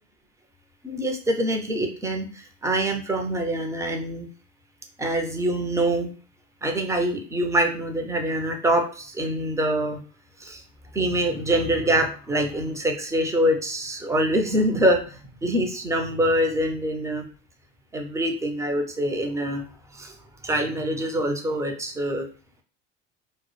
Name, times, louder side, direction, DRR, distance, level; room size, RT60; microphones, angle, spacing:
voice 1, 0.8-4.3 5.0-6.1 6.6-10.0 10.4-10.6 10.9-17.2 17.9-19.6 19.9-20.1 20.4-22.2, right 1 dB, 10° right, 3 dB, 0.4 m, -25 dB
2.1 x 2.0 x 3.0 m, 0.39 s
hypercardioid pair, 80°, 36 cm